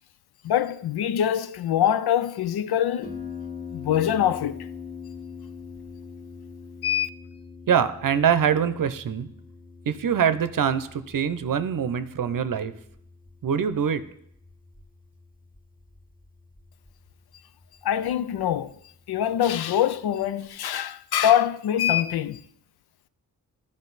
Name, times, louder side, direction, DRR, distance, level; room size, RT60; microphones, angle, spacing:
voice 1, 0.4-3.2 3.7-4.7 6.8-7.1 17.8-18.7 19.1-22.4, left 10 dB, 75° left, 0.5 m, -24 dB
Harp, 3.0-20.5, left 5 dB, 20° left, 1.4 m, -44 dB
voice 2, 7.7-9.3 9.9-12.7 13.4-14.0, right 8 dB, 55° right, 0.7 m, -24 dB
12.5 x 5.2 x 4.0 m
cardioid pair, 60°, 39 cm